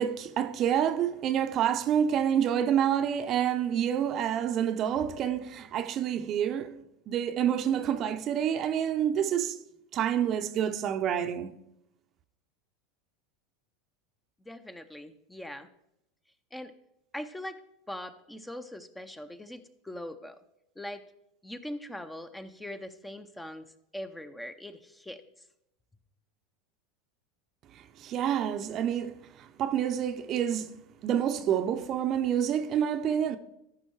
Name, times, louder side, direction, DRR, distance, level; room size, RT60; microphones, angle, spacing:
voice 1, 0.0-9.6 9.9-11.5 27.7-33.4, right 9 dB, 45° right, 0.7 m, -28 dB
voice 2, 14.4-15.7 16.5-16.7 17.1-17.6 17.9-20.4 20.8-21.0 21.4-25.2, left 1 dB, 10° left, 0.7 m, -41 dB
13.5 x 5.4 x 4.7 m
hypercardioid pair, 90°, 0 cm